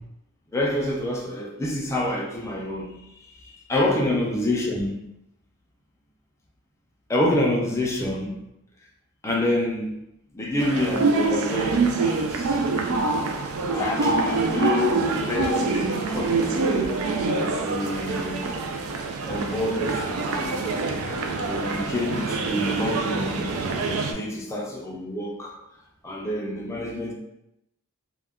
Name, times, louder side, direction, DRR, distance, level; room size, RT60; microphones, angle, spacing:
voice 1, 0.5-3.0 3.4-5.0 7.1-8.3 9.2-9.9 10.3-12.6 13.7-17.0 17.6-18.4 19.3-20.6 21.3-23.4 23.9-25.6 26.0-27.1, left 1 dB, 15° left, -2 dB, 0.4 m, -27 dB
sound 1, 10.6-24.1, right 3 dB, 65° right, 0.4 m, -25 dB
2.2 x 2.2 x 3.4 m, 0.84 s
head